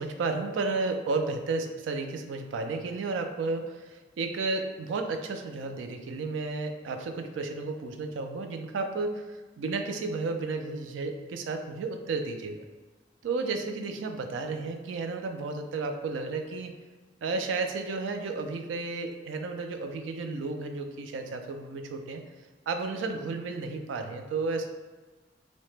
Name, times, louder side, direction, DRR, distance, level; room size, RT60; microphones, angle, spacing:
voice 1, 0.0-12.6 13.2-16.8 17.2-22.2 22.7-24.7, right 3 dB, 90° right, 6 dB, 0.3 m, -32 dB
2.8 x 2.1 x 3.1 m, 1.3 s
head